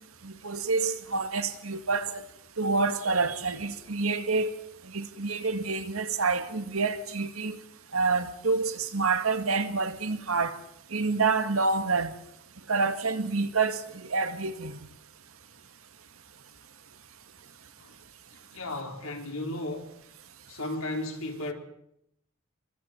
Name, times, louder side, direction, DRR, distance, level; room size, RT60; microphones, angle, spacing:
voice 1, 0.2-2.2 2.6-4.5 4.9-7.6 7.9-10.6 10.9-12.1 12.7-14.8, right 4 dB, 75° right, 1.9 m, -28 dB
voice 2, 18.5-19.9 20.5-21.5, left 2 dB, 75° left, 4.0 m, -34 dB
30.0 x 24.0 x 4.5 m
head